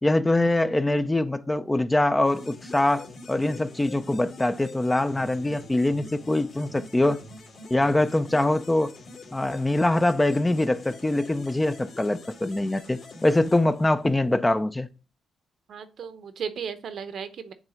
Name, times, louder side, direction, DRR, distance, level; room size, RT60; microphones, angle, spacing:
voice 1, 0.0-7.2 7.7-8.9 9.3-14.9, left 1 dB, 15° left, 0.4 m, -23 dB
sound 1, 2.3-14.3, left 2 dB, 55° left, 2.2 m, -45 dB
voice 2, 15.7-17.5, right 7 dB, 60° right, 0.8 m, -35 dB
7.2 x 3.3 x 5.0 m
cardioid pair, 90°, 0 cm